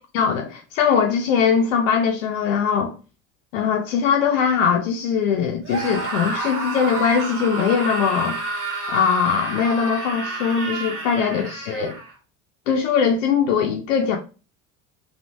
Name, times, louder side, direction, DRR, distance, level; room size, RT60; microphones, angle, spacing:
voice 1, 0.1-2.9 3.5-8.4 8.9-12.0 12.7-14.2, left 6 dB, 80° left, 0.6 m, -21 dB
Screaming, 5.6-12.1, right 3 dB, 35° right, 1.3 m, -29 dB
3.4 x 2.6 x 2.6 m
hypercardioid pair, 70°, 38 cm